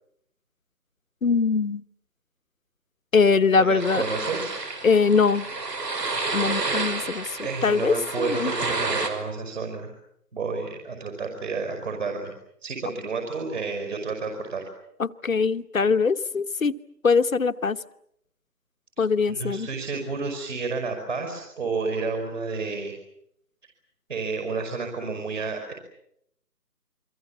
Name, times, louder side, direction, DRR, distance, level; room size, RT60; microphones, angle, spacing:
voice 1, 1.2-1.8 3.1-4.0 4.8-5.5 6.3-8.5 15.0-16.7 17.0-17.8 19.0-19.7, left 5 dB, 55° left, 12 dB, 1.1 m, -22 dB
voice 2, 3.5-4.5 7.4-9.9 10.3-12.3 12.6-14.6 19.3-22.9 24.1-25.7, right 4 dB, 50° right, 3 dB, 5.6 m, -30 dB
sound 1, 3.8-9.1, right 3 dB, 80° right, 5.7 m, -30 dB
30.0 x 23.5 x 7.3 m, 0.74 s
figure-of-eight pair, 175°, 48 cm